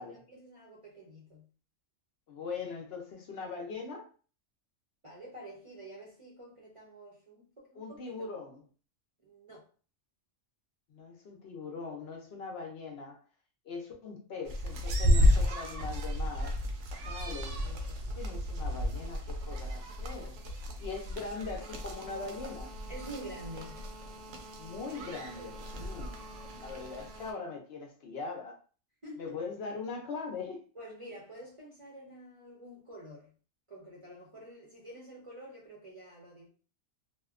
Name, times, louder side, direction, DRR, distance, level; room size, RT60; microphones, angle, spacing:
voice 1, 0.0-1.5 5.0-8.3 9.2-9.7 22.9-23.8 29.0-29.4 30.7-33.3 33.7-36.5, right 1 dB, 35° right, 0.5 m, -48 dB
voice 2, 2.3-4.1 7.8-8.6 10.9-13.2 13.6-16.6 17.0-20.4 20.8-22.7 24.6-26.3 26.6-28.6 29.2-30.6, left 4 dB, 65° left, 0.8 m, -41 dB
sound 1, 14.4-27.3, equal, 80° right, 0.9 m, -32 dB
2.6 x 2.1 x 2.4 m
omnidirectional pair, 1.3 m